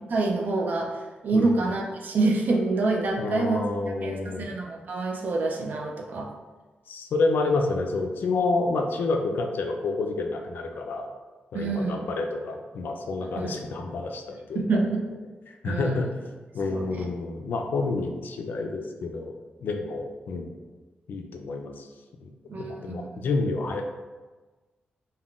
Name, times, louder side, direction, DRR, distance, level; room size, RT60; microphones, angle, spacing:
voice 1, 0.1-1.0 1.2-3.7 4.0-6.3 11.5-12.0 13.4-13.6 14.5-15.0 15.7-16.0 16.7-17.0 22.5-23.1, right 3 dB, 60° right, 0 dB, 0.4 m, -26 dB
voice 2, 3.2-4.5 6.9-11.1 11.5-14.8 15.5-16.1 16.5-19.3 19.6-20.5 21.1-21.9 22.2-22.3 22.6-23.8, left 3 dB, 70° left, 3 dB, 0.3 m, -29 dB
3.5 x 2.2 x 2.3 m, 1.3 s
wide cardioid pair, 120°, 3 cm